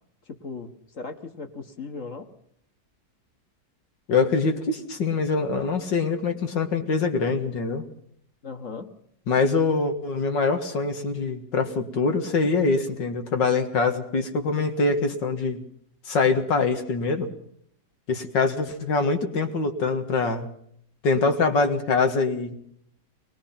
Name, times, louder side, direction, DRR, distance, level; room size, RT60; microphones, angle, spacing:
voice 1, 0.3-2.3 8.4-8.9, left 4 dB, 45° left, 6 dB, 1.9 m, -37 dB
voice 2, 4.1-7.8 9.3-15.6 16.1-17.3 18.1-20.5 21.0-22.5, left 4 dB, 85° left, 6 dB, 2.5 m, -24 dB
22.5 x 20.5 x 5.9 m, 0.68 s
omnidirectional pair, 1.9 m